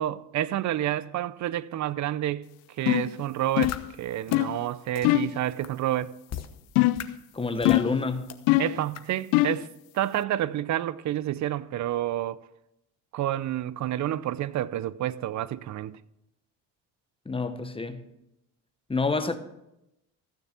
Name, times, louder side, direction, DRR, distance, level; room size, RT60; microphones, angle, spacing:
voice 1, 0.0-2.5 2.8-6.1 8.6-12.4 13.1-16.0, right 13 dB, 55° right, 0.6 m, -29 dB
sound 1, 2.9-3.2 3.6-3.9 4.3-4.6 5.0-5.4 6.8-7.1 7.7-8.0 8.5-8.8 9.3-9.7, left 18 dB, 85° left, 0.5 m, -22 dB
sound 2, 3.6-3.8 4.3-4.4 4.9-5.0 5.6-5.7 6.3-6.5 6.9-7.0 7.6-7.8 8.3-8.4 8.9-9.0, left 9 dB, 45° left, 1.1 m, -35 dB
voice 2, 7.3-8.3 17.2-18.0 18.9-19.4, left 3 dB, 15° left, 1.1 m, -28 dB
15.0 x 6.7 x 5.9 m
cardioid pair, 90°, 35 cm